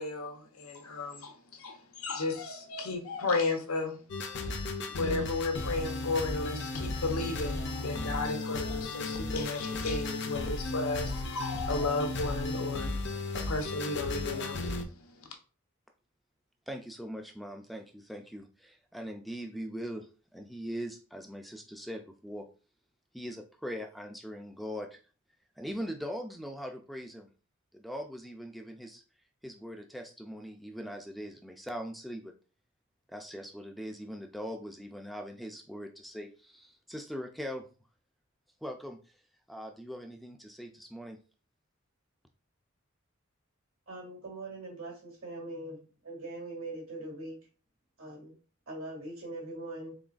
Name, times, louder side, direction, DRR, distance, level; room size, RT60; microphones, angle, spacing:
voice 1, 0.0-4.0 4.4-4.5 4.8-12.9 13.3-14.7 15.0-15.3, left 3 dB, 85° left, 4 dB, 0.8 m, -34 dB
sound 1, 4.1-14.8, left 2 dB, 55° left, 0.5 m, -35 dB
voice 2, 16.7-22.5 23.1-25.0 25.6-27.3 27.7-29.0 29.4-32.3 33.1-37.7 38.6-39.0 39.5-41.2, equal, ahead, 4 dB, 0.3 m, -41 dB
voice 3, 43.9-47.4 48.0-48.4 48.7-49.9, right 2 dB, 80° right, -1 dB, 2.0 m, -42 dB
3.8 x 3.8 x 2.4 m, 0.36 s
head